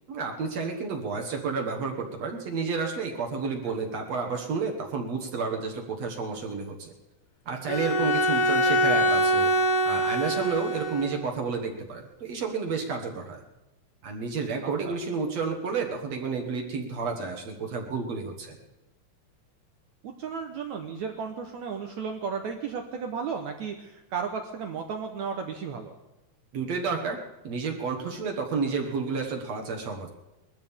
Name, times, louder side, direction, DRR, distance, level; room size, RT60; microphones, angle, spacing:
voice 1, 0.1-6.9 7.5-9.5 9.8-13.4 14.0-18.6 26.5-27.2 27.4-30.1, right 5 dB, 55° right, 3 dB, 2.0 m, -31 dB
Bowed string instrument, 7.7-11.2, equal, 65° left, 3.8 m, -24 dB
voice 2, 20.0-25.9, right 6 dB, 75° right, 4 dB, 1.7 m, -34 dB
22.0 x 14.0 x 3.6 m, 0.99 s
omnidirectional pair, 4.6 m